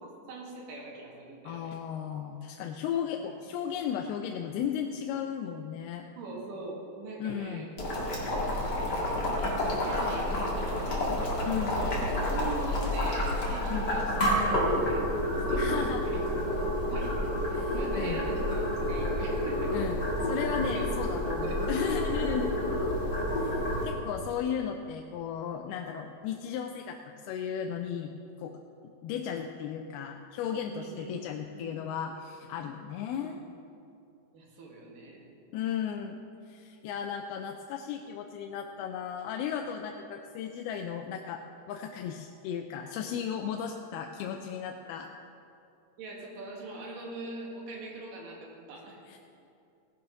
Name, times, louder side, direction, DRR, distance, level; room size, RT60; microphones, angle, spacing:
voice 1, 0.0-1.7 3.2-3.3 3.6-3.8 6.2-7.7 9.4-11.2 11.7-16.4 16.7-19.8 20.7-21.6 30.7-31.8 32.7-33.3 34.3-35.3 46.0-49.0, right 2 dB, 65° right, -2 dB, 3.5 m, -42 dB
voice 2, 1.4-6.1 7.2-7.7 11.5-11.8 13.7-13.9 15.6-16.0 17.6-18.3 19.7-20.0 20.3-22.5 23.4-27.0 27.2-28.1 28.4-28.6 29.0-33.4 35.5-36.2 36.5-45.1 49.1-49.2, left 8 dB, 85° left, 4 dB, 2.5 m, -35 dB
Boiling, 7.8-23.8, left 1 dB, 35° left, 2.0 m, -29 dB
17.0 x 6.7 x 5.6 m, 2.6 s
omnidirectional pair, 4.4 m